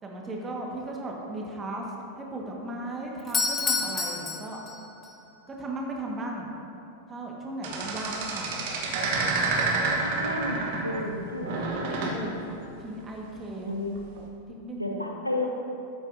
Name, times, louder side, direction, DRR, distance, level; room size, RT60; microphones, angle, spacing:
voice 1, 0.0-1.8 2.2-4.6 5.5-6.5 7.1-8.8 11.7-13.7 14.5-15.1, right 1 dB, 20° right, -1 dB, 1.6 m, -36 dB
Doorbell, 3.2-5.1, left 4 dB, 20° left, 1.0 m, -29 dB
sound 1, 7.6-11.1 11.4-12.2 13.9-14.2, right 3 dB, 50° right, 1.3 m, -29 dB
voice 2, 10.0-11.8 13.7-14.0 14.8-15.5, left 2 dB, 90° left, 1 dB, 0.9 m, -32 dB
13.5 x 8.3 x 2.7 m, 2.9 s
figure-of-eight pair, 90°, 0 cm